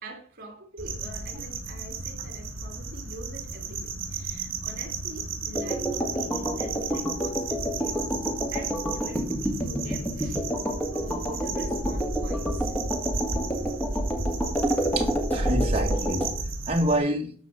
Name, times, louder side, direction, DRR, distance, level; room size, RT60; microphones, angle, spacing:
voice 1, 0.0-8.2 8.5-10.4 10.9-12.7, right 1 dB, 45° right, 3.0 m, -44 dB
sound 1, 0.8-17.0, right 3 dB, 75° right, 2.9 m, -33 dB
sound 2, 5.5-16.3, equal, 10° left, 2.2 m, -29 dB
voice 2, 15.0-16.3 16.7-17.3, right 1 dB, 30° right, 2.1 m, -27 dB
13.0 x 5.0 x 7.0 m
head